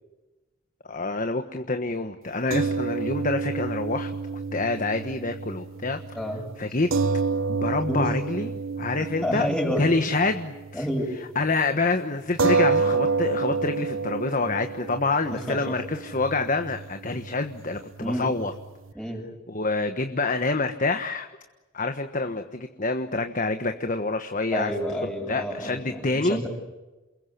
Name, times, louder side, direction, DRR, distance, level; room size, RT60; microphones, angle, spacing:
voice 1, 0.8-6.0 6.6-6.9 7.5-9.5 9.8-10.9 11.3-18.5 19.5-21.3 21.7-24.7 25.0-26.4, left 3 dB, 40° left, 7 dB, 1.3 m, -27 dB
sound 1, 2.5-11.0 11.3-11.5 12.4-18.9, right 4 dB, 90° right, 1.2 m, -29 dB
voice 2, 6.1-6.4 7.9-8.1 9.0-9.8 10.7-11.0 15.3-15.8 18.0-18.3 18.9-19.3 24.5-26.5, equal, 5° left, 1 dB, 7.3 m, -29 dB
29.0 x 21.5 x 8.4 m, 1.1 s
head